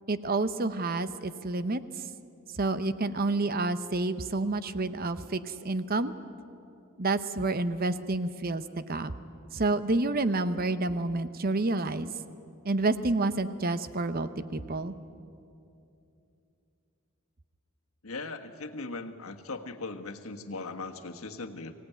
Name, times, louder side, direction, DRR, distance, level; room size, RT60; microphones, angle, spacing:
voice 1, 0.1-1.8 2.6-6.1 7.0-9.1 9.5-12.1 12.6-14.9, right 2 dB, 45° right, 12 dB, 0.8 m, -29 dB
voice 2, 18.0-21.7, left 3 dB, 80° left, 5 dB, 1.5 m, -39 dB
25.0 x 17.5 x 9.3 m, 2.7 s
head